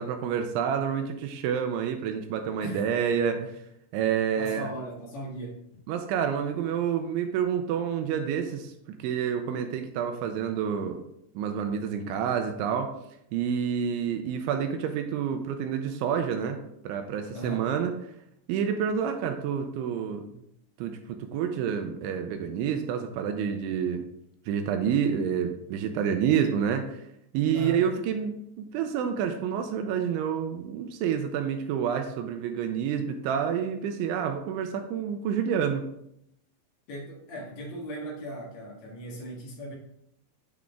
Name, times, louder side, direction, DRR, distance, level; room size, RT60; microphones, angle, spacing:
voice 1, 0.0-3.5 3.9-4.7 5.9-8.7 9.0-11.0 11.4-12.9 13.3-16.6 16.8-17.9 18.5-20.2 20.8-24.0 24.5-27.0 27.3-35.8, right 8 dB, 80° right, 6 dB, 2.9 m, -28 dB
voice 2, 4.4-5.8 17.3-17.7 27.5-27.8 36.9-39.8, equal, 65° left, -2 dB, 1.7 m, -38 dB
9.7 x 6.2 x 3.5 m, 0.76 s
omnidirectional pair, 5.8 m